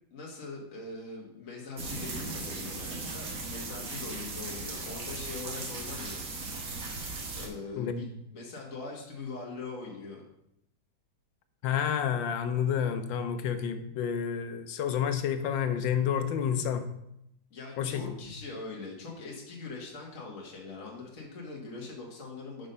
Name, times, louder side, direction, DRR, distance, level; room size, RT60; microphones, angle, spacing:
voice 1, 0.1-6.2 7.4-10.2 17.5-22.7, left 3 dB, 45° left, -2 dB, 1.8 m, -42 dB
sound 1, 1.8-7.5, right 3 dB, 50° right, 1.5 m, -37 dB
voice 2, 7.8-8.1 11.6-16.9 17.8-18.1, left 8 dB, 90° left, 9 dB, 1.4 m, -29 dB
6.1 x 5.3 x 5.5 m, 0.79 s
omnidirectional pair, 2.0 m